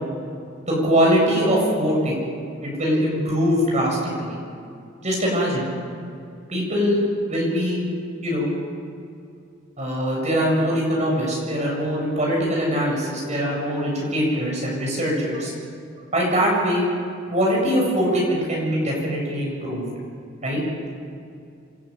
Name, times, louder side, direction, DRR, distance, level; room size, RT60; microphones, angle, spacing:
voice 1, 0.7-2.2 2.6-4.4 5.0-5.7 6.5-7.0 7.3-7.8 8.2-8.5 9.8-15.5 16.1-16.9 17.3-19.8 20.4-20.6, equal, 35° right, -3 dB, 7.6 m, -22 dB
27.5 x 12.0 x 9.1 m, 2.5 s
head